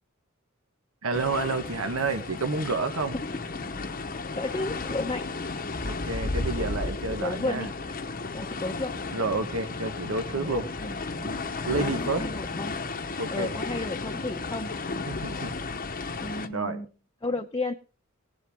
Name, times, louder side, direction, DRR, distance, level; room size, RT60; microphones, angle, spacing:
voice 1, 1.0-3.1 5.8-7.7 9.1-10.7 11.2-12.2 13.2-13.5 15.1-15.5 16.5-16.8, right 3 dB, 90° right, 8 dB, 1.3 m, -30 dB
sound 1, 1.1-16.5, left 3 dB, 45° left, 0.9 m, -34 dB
voice 2, 4.3-5.3 6.5-7.7 8.3-9.0 10.3-11.1 11.8-12.8 13.3-14.8 16.2-16.9 17.2-17.7, left 2 dB, 20° left, 2 dB, 0.7 m, -33 dB
19.0 x 7.6 x 3.5 m, 0.35 s
head